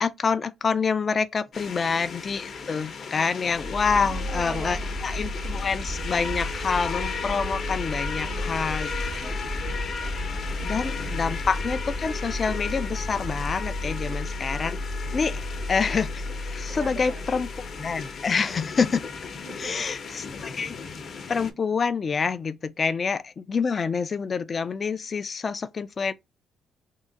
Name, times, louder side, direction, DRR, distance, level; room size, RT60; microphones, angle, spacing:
voice 1, 0.0-8.9 9.2-9.4 10.6-14.8 15.1-15.4 15.7-17.5 17.8-19.0 19.6-20.8 21.3-26.1, left 5 dB, 40° left, 0.4 m, -27 dB
sound 1, 1.5-21.5, left 5 dB, 55° left, 0.8 m, -36 dB
sound 2, 3.5-18.3, left 1 dB, 25° right, 0.6 m, -33 dB
voice 2, 3.9-5.1 8.0-10.7 10.9-11.1 15.2-15.4 16.7-17.2 19.4-19.9, right 4 dB, 70° right, 1.3 m, -43 dB
3.6 x 2.1 x 3.9 m
cardioid pair, 90°, 0 cm